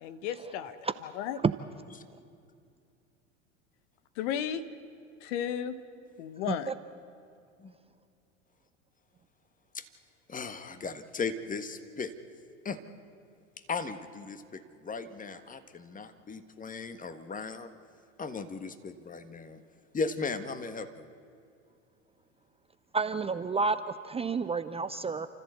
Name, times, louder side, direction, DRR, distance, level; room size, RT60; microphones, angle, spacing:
voice 1, 0.0-1.4 4.2-4.6 5.2-5.7 6.2-6.7, left 9 dB, 65° left, 13 dB, 1.2 m, -34 dB
voice 2, 10.3-12.1 12.6-12.8 13.7-17.7 18.2-19.6 19.9-21.1, left 4 dB, 20° left, 10 dB, 1.5 m, -37 dB
voice 3, 22.9-23.8 24.0-25.3, right 4 dB, 15° right, 11 dB, 0.6 m, -29 dB
29.5 x 14.0 x 8.0 m, 2.5 s
hypercardioid pair, 80°, 39 cm